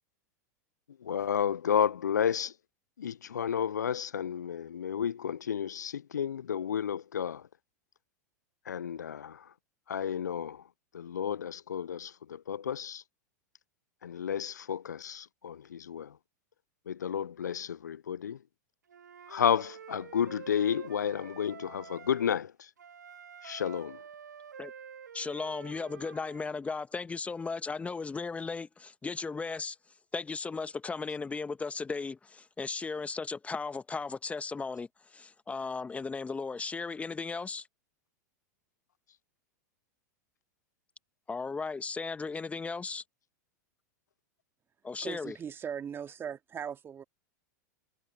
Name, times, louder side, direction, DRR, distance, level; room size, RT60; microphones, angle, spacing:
voice 1, 1.0-2.5 3.0-7.5 8.7-9.5 9.9-10.6 10.9-13.0 14.0-16.2 16.9-18.4 19.3-22.7 23.4-24.0, left 8 dB, 80° left, 0.5 m, -32 dB
Wind instrument woodwind instrument, 18.9-22.3 22.8-26.5, right 7 dB, 80° right, 0.9 m, -48 dB
voice 2, 25.1-29.8 30.1-37.7 41.3-43.0 44.8-45.4, left 4 dB, 15° left, 1.4 m, -36 dB
voice 3, 45.0-47.0, right 8 dB, 25° right, 2.5 m, -39 dB
hypercardioid pair, 95°, 9 cm